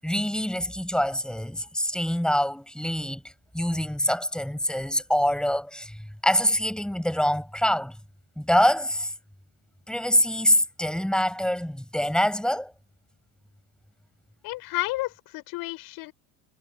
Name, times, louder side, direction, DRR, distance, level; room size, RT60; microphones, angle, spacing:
voice 1, 0.0-3.2 3.5-8.0 8.4-9.1 9.9-12.7, equal, ahead, 7.2 m, -25 dB
voice 2, 14.4-16.1, left 20 dB, 60° left, 5.4 m, -31 dB
supercardioid pair, 110°, 42 cm